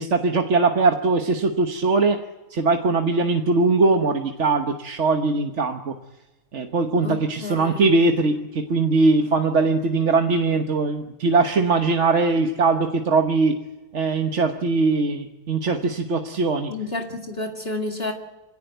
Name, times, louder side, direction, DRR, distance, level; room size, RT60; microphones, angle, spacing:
voice 1, 0.0-2.2 2.5-5.9 6.5-13.6 13.9-16.7, right 3 dB, 50° right, 4 dB, 1.4 m, -21 dB
voice 2, 7.0-8.0 16.7-18.1, left 2 dB, 35° left, 2 dB, 2.4 m, -30 dB
25.5 x 17.5 x 9.1 m, 1.1 s
omnidirectional pair, 1.7 m